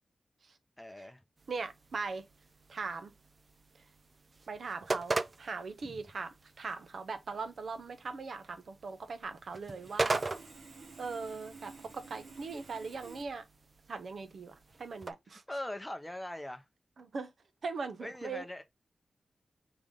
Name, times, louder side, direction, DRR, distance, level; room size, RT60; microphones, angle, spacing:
voice 1, 0.8-1.2 5.8-6.0 15.5-16.7 18.0-18.6, left 1 dB, 10° left, 0.6 m, -41 dB
sound 1, 1.4-15.1, right 3 dB, 35° right, 0.4 m, -41 dB
voice 2, 1.5-2.2 2.7-3.1 4.5-10.2 11.0-13.4 13.9-15.4 17.0-17.3 17.6-18.4, right 4 dB, 65° right, 0.8 m, -40 dB
Sawing, 9.2-9.3 9.7-13.2, right 4 dB, 80° right, 1.9 m, -52 dB
3.9 x 3.4 x 3.6 m
wide cardioid pair, 165°, 0 cm